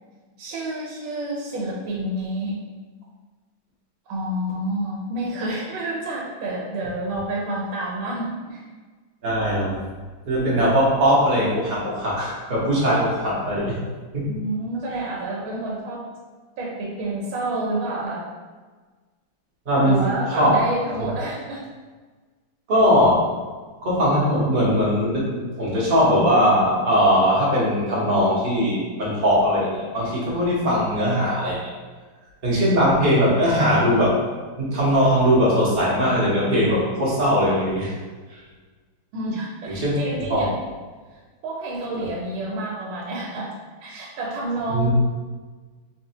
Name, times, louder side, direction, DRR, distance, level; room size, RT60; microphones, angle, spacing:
voice 1, 0.4-2.6 4.1-8.6 14.3-16.0 16.6-18.2 19.8-21.6 32.5-32.7 39.1-40.6 41.4-43.5 43.8-44.9, right 1 dB, 75° right, -4 dB, 1.4 m, -29 dB
voice 2, 9.2-9.8 10.3-13.8 14.1-14.3 19.7-20.6 21.0-21.1 22.7-23.2 23.8-31.7 32.4-34.1 34.6-37.9 39.7-39.9 40.3-40.4 44.7-44.9, equal, 35° right, -7 dB, 0.7 m, -20 dB
4.1 x 2.6 x 2.8 m, 1.4 s
omnidirectional pair, 2.4 m